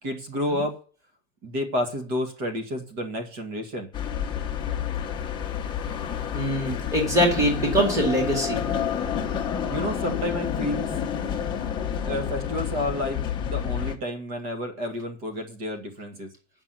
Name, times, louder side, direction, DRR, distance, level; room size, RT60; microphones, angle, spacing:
voice 1, 0.0-0.8 1.4-3.9 9.7-10.9 12.0-16.3, left 1 dB, 45° right, 5 dB, 2.1 m, -30 dB
sound 1, 3.9-14.0, left 8 dB, 10° left, 0.9 m, -29 dB
voice 2, 6.3-8.6, equal, 10° right, 1 dB, 2.0 m, -23 dB
8.8 x 6.0 x 7.7 m, 0.40 s
supercardioid pair, 175°, 39 cm